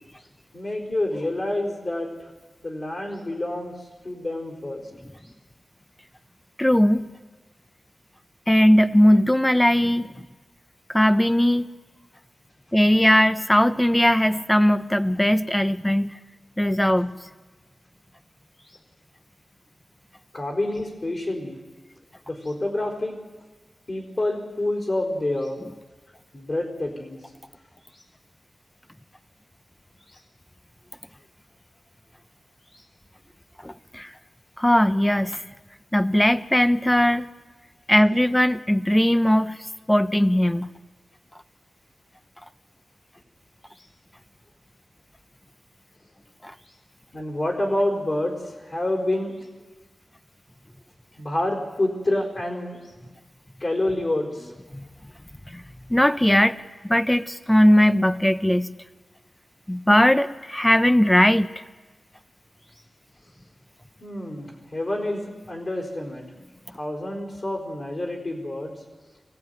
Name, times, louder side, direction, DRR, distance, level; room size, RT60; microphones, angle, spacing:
voice 1, 0.5-2.1 2.6-3.8 4.0-4.9 18.6-18.8 20.3-21.6 22.3-23.2 23.9-25.6 26.3-27.2 30.1-30.2 32.7-32.8 47.1-49.5 51.2-52.8 53.6-54.5 64.0-66.2 66.7-68.7, left 1 dB, 40° left, 0 dB, 4.3 m, -28 dB
voice 2, 6.6-7.1 8.5-10.1 10.9-11.7 12.7-16.2 16.6-17.2 33.6-34.1 34.6-35.4 35.9-37.3 37.9-39.6 39.9-40.7 46.4-46.5 54.7-54.9 55.5-55.6 55.9-56.6 56.8-58.7 59.7-61.5, equal, 10° left, 12 dB, 0.8 m, -19 dB
24.5 x 16.5 x 9.4 m, 1.3 s
wide cardioid pair, 120°, 0 cm